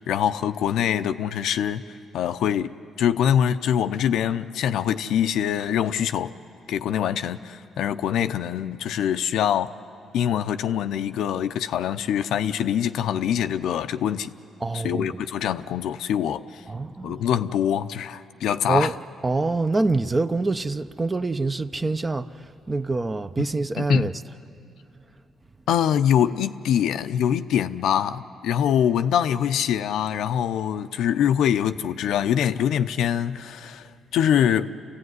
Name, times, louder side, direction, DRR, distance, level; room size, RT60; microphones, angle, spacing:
voice 1, 0.1-1.8 2.1-6.3 6.7-9.7 10.1-14.3 14.7-16.6 17.0-18.9 23.4-23.5 23.8-24.1 25.7-33.9 34.1-34.7, left 9 dB, 80° left, 0.6 m, -24 dB
voice 2, 14.6-15.2 16.7-17.2 18.7-18.9 19.2-22.3 22.7-24.1, right 3 dB, 25° right, 0.7 m, -25 dB
28.0 x 15.5 x 9.6 m
cardioid pair, 90°, 0 cm